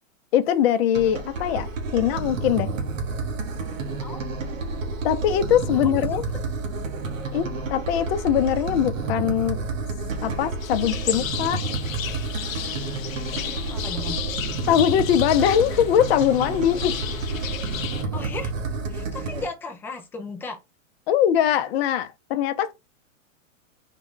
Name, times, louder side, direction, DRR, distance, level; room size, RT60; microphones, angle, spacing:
voice 1, 0.3-2.7 5.0-6.2 7.3-9.6 10.2-11.6 14.7-16.9 21.1-22.7, left 10 dB, 50° left, 0.6 m, -22 dB
sound 1, 0.9-19.5, right 3 dB, 80° right, 1.1 m, -30 dB
voice 2, 4.0-4.4 5.7-6.0 7.5-7.6 13.1-14.2 18.1-18.5 18.9-20.6, left 3 dB, 5° left, 0.4 m, -36 dB
sound 2, 10.6-18.0, left 10 dB, 90° left, 0.6 m, -33 dB
3.7 x 2.2 x 3.7 m
hypercardioid pair, 125°, 39 cm